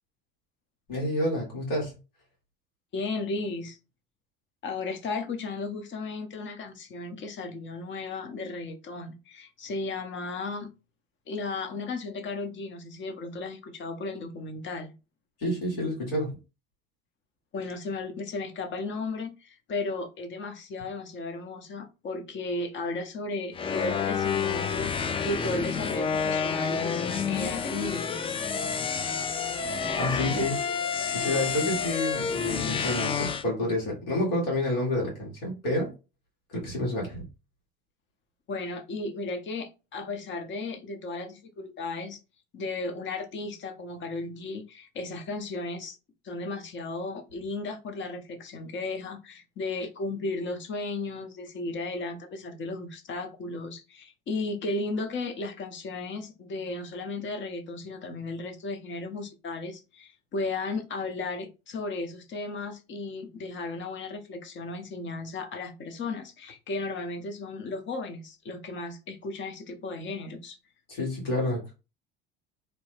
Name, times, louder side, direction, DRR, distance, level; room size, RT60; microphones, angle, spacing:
voice 1, 0.9-2.0 15.4-16.3 30.0-30.6 31.0-35.9 36.5-37.2 70.9-71.7, left 1 dB, 80° left, 1.8 m, -29 dB
voice 2, 2.9-3.8 4.6-10.7 11.3-14.9 17.5-28.1 30.3-30.4 38.5-42.2 42.5-46.0 46.2-70.6, left 3 dB, 40° left, 0.8 m, -35 dB
sound 1, 23.5-33.4, left 6 dB, 20° left, 0.3 m, -29 dB
3.0 x 2.1 x 3.2 m
hypercardioid pair, 70°, 29 cm